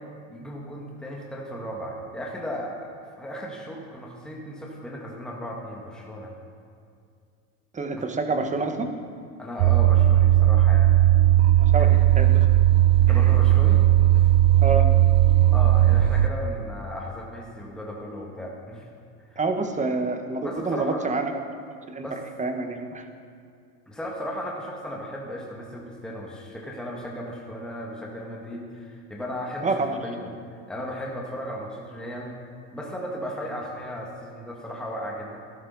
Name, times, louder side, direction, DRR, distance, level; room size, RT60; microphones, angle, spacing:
voice 1, 0.3-6.3 9.4-11.1 11.7-12.0 13.0-13.9 14.1-14.3 15.5-18.8 19.2-19.4 20.4-21.1 22.0-22.2 23.9-30.3 30.7-32.4 32.7-35.4, equal, ahead, -3 dB, 1.9 m, -36 dB
voice 2, 7.7-8.9 11.6-12.5 13.1-13.3 14.6-14.9 19.4-21.4 21.9-23.0 29.6-30.0, right 3 dB, 20° right, 6 dB, 1.3 m, -28 dB
sound 1, 9.6-16.3, right 13 dB, 65° right, 0.7 m, -17 dB
13.0 x 12.5 x 4.1 m, 2.3 s
supercardioid pair, 105°, 39 cm